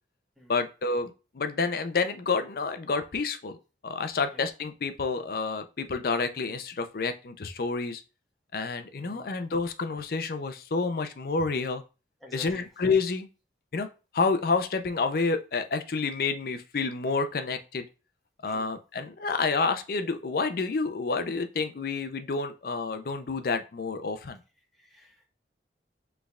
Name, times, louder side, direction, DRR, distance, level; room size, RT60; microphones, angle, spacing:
voice 1, 0.5-3.6 3.8-8.0 8.5-11.8 12.3-13.3 13.7-13.9 14.1-17.8 18.4-24.4, left 4 dB, 55° left, 9 dB, 0.5 m, -29 dB
voice 2, 9.0-9.3 12.2-12.7 18.5-18.7 24.8-25.3, left 1 dB, ahead, -2 dB, 1.3 m, -50 dB
6.2 x 3.3 x 2.3 m, 0.31 s
head